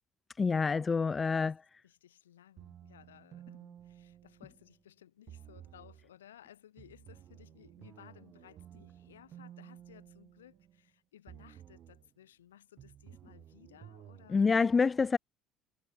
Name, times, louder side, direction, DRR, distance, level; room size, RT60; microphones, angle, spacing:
voice 1, 0.4-1.6 14.3-15.2, left 5 dB, 25° left, 0.3 m, -27 dB
voice 2, 1.8-14.5, left 11 dB, 90° left, 7.4 m, -59 dB
sound 1, 2.6-4.8 5.3-6.1 6.8-10.9 11.3-12.1 12.8-14.6, right 11 dB, 50° right, 5.0 m, -54 dB
hypercardioid pair, 70°, 0 cm